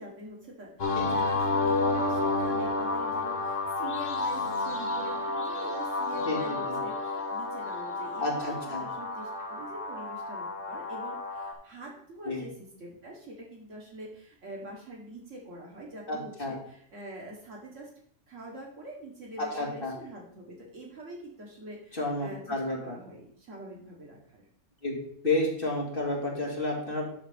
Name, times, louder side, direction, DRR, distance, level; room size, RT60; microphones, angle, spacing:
voice 1, 0.0-17.9 18.3-24.4, right 1 dB, 75° right, -2 dB, 2.0 m, -45 dB
sound 1, 0.8-11.5, left 3 dB, 85° left, 1.9 m, -31 dB
voice 2, 6.3-6.7 8.2-8.8 12.3-12.4 16.1-16.5 19.5-19.9 21.9-22.9 24.8-25.0 25.2-27.0, left 2 dB, 45° left, -2 dB, 2.5 m, -31 dB
11.5 x 4.0 x 5.1 m, 0.63 s
omnidirectional pair, 1.3 m